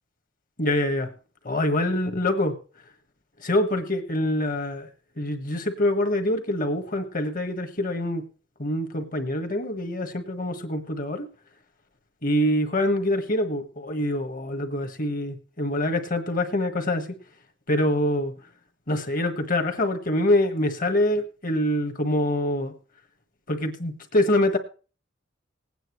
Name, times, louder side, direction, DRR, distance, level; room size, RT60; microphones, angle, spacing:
voice 1, 0.6-1.1 1.4-2.5 3.4-4.9 5.2-8.2 8.6-11.3 12.2-17.1 17.7-18.3 18.9-22.7 23.5-24.6, left 1 dB, 45° left, 7 dB, 1.5 m, -25 dB
20.0 x 9.2 x 3.1 m, 0.37 s
head